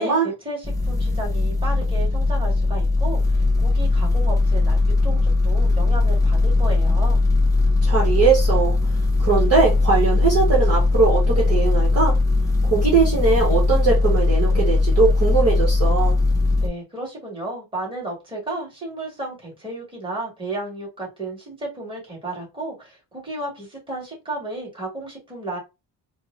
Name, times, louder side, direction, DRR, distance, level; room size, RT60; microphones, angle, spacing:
voice 1, 0.0-7.2 16.6-25.6, right 2 dB, 10° right, 1.9 m, -33 dB
sound 1, 0.6-16.7, left 2 dB, 10° left, 0.7 m, -19 dB
voice 2, 7.8-8.8 9.2-12.2 12.6-16.2, right 4 dB, 35° right, 1.2 m, -20 dB
4.5 x 2.1 x 2.6 m
cardioid pair, 125°, 41 cm